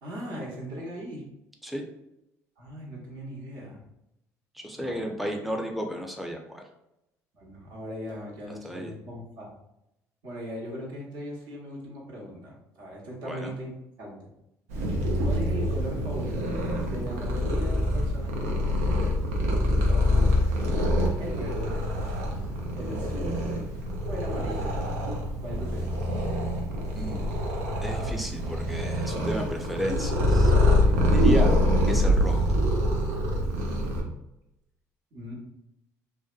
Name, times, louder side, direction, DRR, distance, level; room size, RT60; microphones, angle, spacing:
voice 1, 0.0-1.3 2.6-3.8 4.7-5.1 7.3-9.5 10.2-14.3 15.2-18.9 19.6-20.3 21.2-21.8 22.7-23.4 24.1-24.7 25.4-25.9 30.8-31.3 35.1-35.3, equal, 60° right, -3 dB, 0.9 m, -39 dB
voice 2, 4.6-6.6 8.6-8.9 13.2-13.5 26.9-27.2 27.8-30.5 31.0-31.5 31.9-32.6, equal, ahead, 2 dB, 0.5 m, -33 dB
Purr, 14.7-34.0, left 1 dB, 85° right, 0.5 m, -25 dB
2.5 x 2.2 x 2.4 m, 0.85 s
hypercardioid pair, 60°, 8 cm